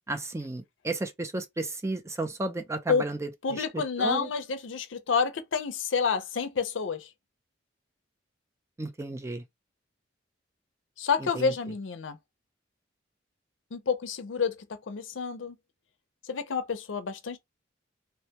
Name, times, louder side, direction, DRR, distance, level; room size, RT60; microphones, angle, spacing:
voice 1, 0.1-4.3 8.8-9.4 11.2-11.5, right 2 dB, 15° right, 0.4 m, -33 dB
voice 2, 3.4-7.1 11.0-12.2 13.7-14.5 14.9-15.6 16.3-17.4, left 5 dB, 80° left, 0.5 m, -29 dB
2.2 x 2.2 x 2.8 m
head